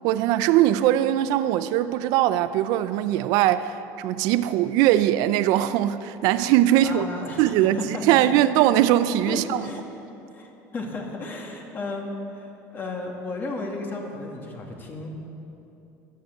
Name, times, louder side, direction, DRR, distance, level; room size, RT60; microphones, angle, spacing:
voice 1, 0.0-7.1 7.4-9.6, right 13 dB, 65° right, 0.5 m, -21 dB
voice 2, 6.8-8.3 9.3-9.8 10.3-15.1, left 2 dB, 30° left, 2.3 m, -34 dB
14.0 x 10.5 x 7.8 m
cardioid pair, 130°, 7 cm